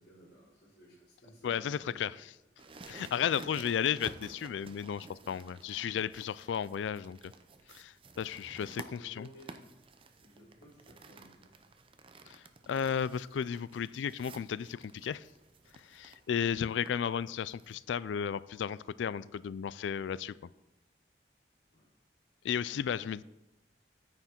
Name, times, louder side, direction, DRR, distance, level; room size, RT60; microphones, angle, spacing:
voice 1, 0.0-2.0 9.0-9.6 10.2-11.5 21.7-21.9, equal, 60° left, -12 dB, 3.9 m, -56 dB
voice 2, 1.4-2.1 2.8-7.3 7.7-9.3 12.3-15.3 15.8-20.3 22.4-23.2, left 8 dB, 85° left, 19 dB, 0.3 m, -34 dB
sound 1, 2.6-17.8, right 3 dB, 30° right, 0.6 m, -53 dB
9.5 x 9.2 x 4.4 m, 0.93 s
head